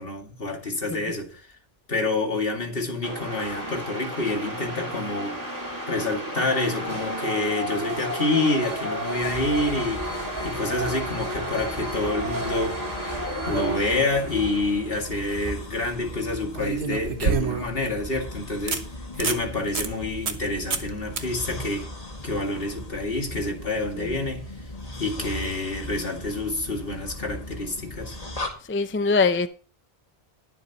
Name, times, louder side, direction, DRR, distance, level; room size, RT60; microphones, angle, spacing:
voice 1, 0.0-1.5 1.9-5.4 5.9-12.8 13.5-18.8 19.2-21.9 22.2-24.5 25.0-28.2, left 2 dB, 65° left, 2.5 m, -28 dB
sound 1, 3.0-15.3, right 1 dB, 20° right, 2.4 m, -32 dB
sound 2, 9.2-28.5, left 1 dB, 40° left, 2.1 m, -38 dB
sound 3, 14.9-15.1 16.5-17.8 18.3-18.4 18.7-18.8 19.1-19.4 19.8-19.9 20.3-20.4 20.7-20.9 21.2-21.3 24.4-24.5, right 5 dB, 90° right, 1.5 m, -27 dB
voice 2, 28.7-29.5, left 4 dB, 20° left, 0.4 m, -23 dB
20.5 x 7.4 x 3.0 m
omnidirectional pair, 1.0 m